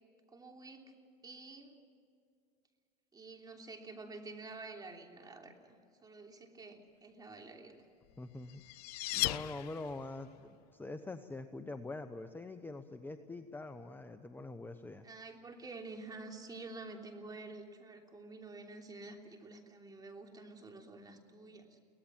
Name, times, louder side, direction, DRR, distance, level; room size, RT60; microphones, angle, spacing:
voice 1, 0.3-0.8 1.2-1.8 3.1-7.8 15.0-21.8, right 3 dB, 20° right, 3 dB, 3.2 m, -49 dB
sound 1, 8.1-10.2, left 18 dB, 75° left, 0.6 m, -37 dB
voice 2, 8.2-8.6 9.1-15.1, left 2 dB, 10° left, 9 dB, 0.9 m, -44 dB
24.0 x 18.0 x 7.5 m, 2.3 s
supercardioid pair, 105°, 21 cm